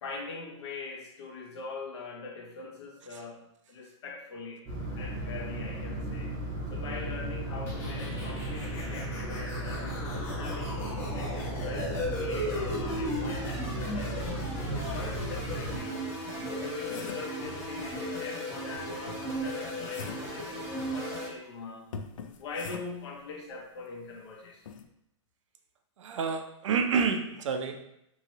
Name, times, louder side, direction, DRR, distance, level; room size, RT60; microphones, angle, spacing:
voice 1, 0.0-4.6 5.0-6.3 6.7-10.8 11.1-16.0 16.4-21.9 22.4-24.6, left 3 dB, 60° left, 1 dB, 0.8 m, -42 dB
sound 1, 4.7-15.8, right 1 dB, 20° right, 0.8 m, -36 dB
sound 2, 7.7-21.3, equal, 15° left, 0.6 m, -36 dB
sound 3, 15.7-17.4 19.1-20.4 21.9-23.1 24.7-24.9, left 5 dB, 85° left, 0.4 m, -43 dB
voice 2, 26.0-27.9, right 5 dB, 75° right, 7 dB, 0.5 m, -29 dB
3.1 x 2.9 x 2.7 m, 0.80 s
hypercardioid pair, 160°, 16 cm